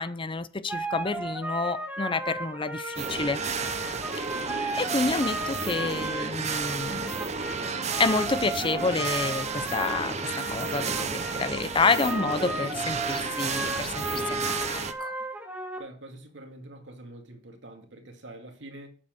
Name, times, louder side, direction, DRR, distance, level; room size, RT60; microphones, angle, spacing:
voice 1, 0.0-3.4 4.8-7.3 8.0-15.1, left 3 dB, 30° left, 0.6 m, -29 dB
sound 1, 0.7-15.8, right 1 dB, 10° right, 1.7 m, -35 dB
sound 2, 3.0-14.9, right 5 dB, 40° right, 0.8 m, -32 dB
voice 2, 15.8-18.9, right 1 dB, 85° right, 2.3 m, -45 dB
8.6 x 7.1 x 6.6 m
head